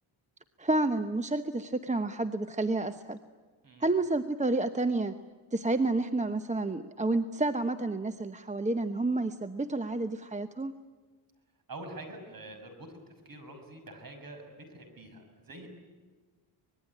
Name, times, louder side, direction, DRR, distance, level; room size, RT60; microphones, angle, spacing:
voice 1, 0.6-3.2 3.8-5.1 5.5-10.7, right 2 dB, 15° right, 10 dB, 0.9 m, -30 dB
voice 2, 11.7-15.7, right 2 dB, 50° right, 6 dB, 6.2 m, -46 dB
25.0 x 20.5 x 9.7 m, 1.4 s
cardioid pair, 110°, 46 cm